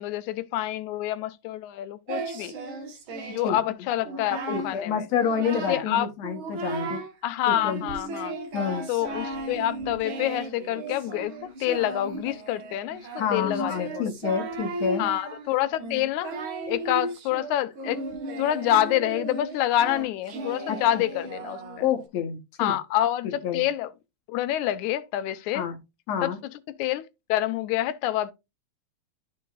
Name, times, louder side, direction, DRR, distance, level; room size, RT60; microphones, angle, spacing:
voice 1, 0.0-2.5 3.3-5.1 5.7-6.1 7.2-8.4 8.9-14.1 15.0-16.4 16.7-18.0 18.4-21.6 22.6-23.9 24.3-25.7 26.2-26.3 26.8-28.3, left 13 dB, 90° left, 2.1 m, -27 dB
Singing, 2.1-3.6 4.0-4.7 5.1-5.9 6.2-7.1 7.5-22.0, right 2 dB, 55° right, 1.6 m, -35 dB
voice 2, 4.5-7.0 7.5-7.8 8.5-8.8 13.2-15.1 20.7-21.0 21.8-22.7 23.4-23.6 25.5-25.8 26.1-26.4, left 7 dB, 70° left, 2.1 m, -28 dB
12.5 x 4.6 x 2.4 m
omnidirectional pair, 3.3 m